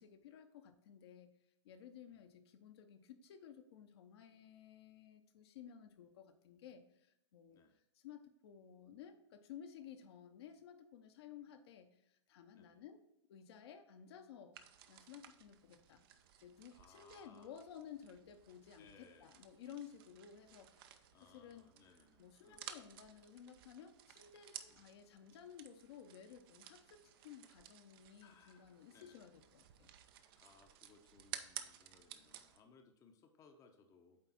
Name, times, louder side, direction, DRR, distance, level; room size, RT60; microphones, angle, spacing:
voice 1, 0.0-1.4 1.6-7.6 7.9-13.0 13.3-14.6 14.9-16.0 16.4-21.1 21.3-21.7 22.2-29.9, left 8 dB, 60° left, 6 dB, 0.9 m, -55 dB
sound 1, 14.5-32.6, right 10 dB, 50° right, 0.7 m, -55 dB
voice 2, 16.7-17.6 18.8-19.4 21.1-22.6 24.7-25.0 28.2-29.3 30.4-34.2, left 5 dB, 20° left, 4 dB, 0.8 m, -66 dB
8.8 x 3.5 x 4.1 m, 0.85 s
hypercardioid pair, 125°, 16 cm